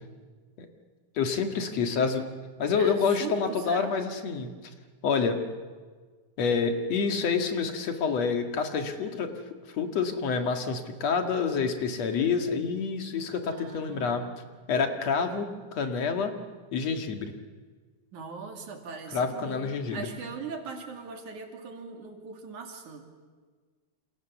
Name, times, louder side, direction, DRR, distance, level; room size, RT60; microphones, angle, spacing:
voice 1, 1.2-2.3 2.6-4.5 5.0-5.4 6.4-9.4 9.7-14.2 14.7-16.3 16.7-17.3 19.1-20.1, left 5 dB, 60° left, 5 dB, 3.0 m, -28 dB
voice 2, 2.8-4.0 13.5-14.5 18.1-23.1, right 5 dB, 75° right, 4 dB, 4.1 m, -40 dB
28.0 x 28.0 x 7.2 m, 1.5 s
omnidirectional pair, 3.5 m